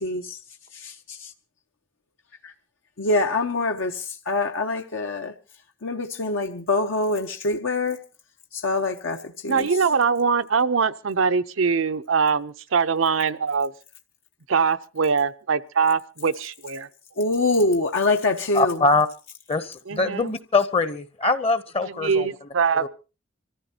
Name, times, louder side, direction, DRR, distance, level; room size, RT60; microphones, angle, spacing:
voice 1, 0.0-0.4 0.8-0.9 3.0-5.3 5.8-8.0 8.6-9.2 9.4-9.7 17.2-18.8, left 2 dB, 80° left, 0.9 m, -24 dB
voice 2, 9.5-13.7 14.5-16.9 19.9-20.2 22.0-22.9, right 5 dB, 80° right, 0.7 m, -22 dB
voice 3, 18.5-19.1 19.5-22.5 22.7-22.9, left 3 dB, 30° left, 0.7 m, -23 dB
25.5 x 14.5 x 2.8 m
head